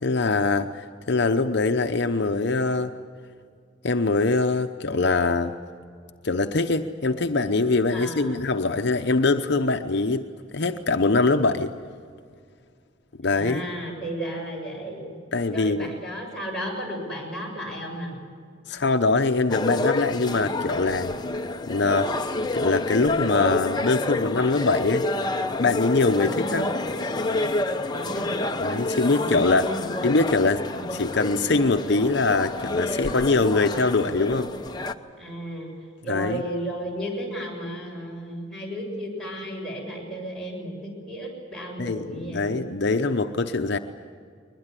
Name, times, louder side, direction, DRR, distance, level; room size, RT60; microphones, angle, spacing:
voice 1, 0.0-2.9 3.8-5.5 6.2-10.2 10.5-11.7 13.2-13.6 15.3-15.9 18.7-21.1 21.7-22.1 22.5-25.0 25.6-26.7 28.6-29.7 30.0-34.5 36.1-36.4 41.8-43.8, left 3 dB, 60° left, 6 dB, 0.8 m, -23 dB
voice 2, 7.9-8.4 13.3-15.2 15.5-18.2 26.1-26.6 27.9-28.4 29.1-30.1 30.7-30.9 35.2-35.7 36.0-42.7, equal, 5° left, -3 dB, 7.2 m, -34 dB
sound 1, 19.5-34.9, left 2 dB, 20° left, 0.9 m, -28 dB
22.0 x 21.0 x 9.9 m, 2.1 s
head